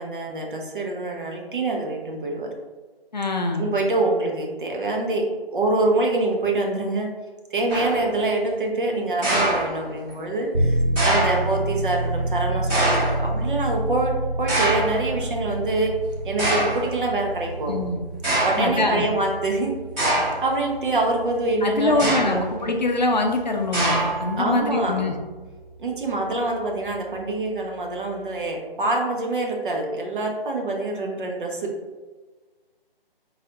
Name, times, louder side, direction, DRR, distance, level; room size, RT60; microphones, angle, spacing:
voice 1, 0.0-2.5 3.6-7.1 7.5-15.9 16.2-17.8 18.4-19.7 20.0-22.4 24.4-25.0 25.8-31.7, right 2 dB, 55° right, 0 dB, 0.9 m, -25 dB
voice 2, 3.1-3.7 17.7-18.0 18.6-19.1 21.6-25.1, left 2 dB, 45° left, 3 dB, 0.5 m, -23 dB
sound 1, 7.7-8.1 9.2-10.1 11.0-11.5 12.7-13.3 14.5-15.0 15.8-15.9 16.4-16.9 17.7-17.8 18.2-18.7 20.0-20.5 21.9-22.5 23.7-24.4, right 1 dB, 10° right, 1.1 m, -23 dB
sound 2, 10.5-26.9, right 1 dB, 30° right, 0.7 m, -30 dB
3.9 x 3.3 x 2.8 m, 1.3 s
figure-of-eight pair, 155°, 31 cm